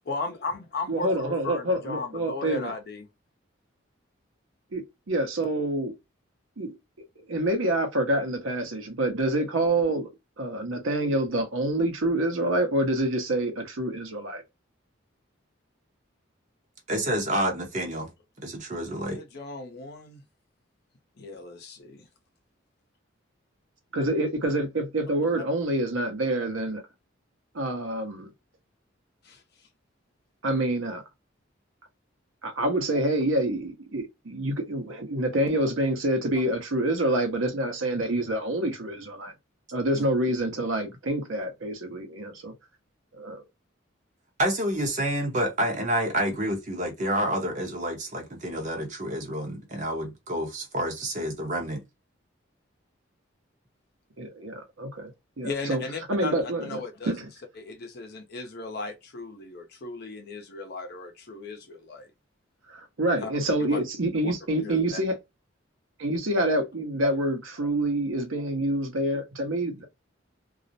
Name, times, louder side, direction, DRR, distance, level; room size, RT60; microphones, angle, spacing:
voice 1, 0.0-3.1 18.7-20.2 21.2-22.1 29.2-29.4 55.4-57.2 57.6-62.1 63.2-63.3 63.7-63.8 64.2-64.3 64.6-65.0, left 3 dB, 55° left, 0.6 m, -36 dB
voice 2, 0.9-2.7 4.7-5.9 6.6-6.8 7.3-10.1 10.4-14.4 23.9-26.8 27.5-28.3 30.4-31.0 32.4-39.3 39.7-42.5 43.2-43.4 54.2-55.1 55.4-55.8 56.1-57.3 62.7-65.2 66.0-69.9, right 1 dB, 80° right, 0.8 m, -27 dB
voice 3, 16.9-18.1 18.4-19.2 44.4-51.8, right 1 dB, 35° right, 0.7 m, -28 dB
2.4 x 2.0 x 2.6 m
head